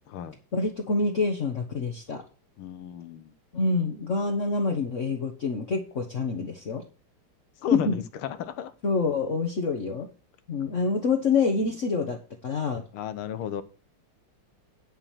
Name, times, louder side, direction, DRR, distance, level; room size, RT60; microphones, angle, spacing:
voice 1, 0.5-2.2 3.5-6.8 7.7-8.0 8.8-10.1 10.5-12.2 12.4-12.8, left 4 dB, 40° left, 1.3 m, -26 dB
voice 2, 2.6-3.3 7.6-8.7 12.9-13.6, left 9 dB, 85° left, 1.8 m, -33 dB
10.5 x 5.0 x 7.3 m
omnidirectional pair, 2.3 m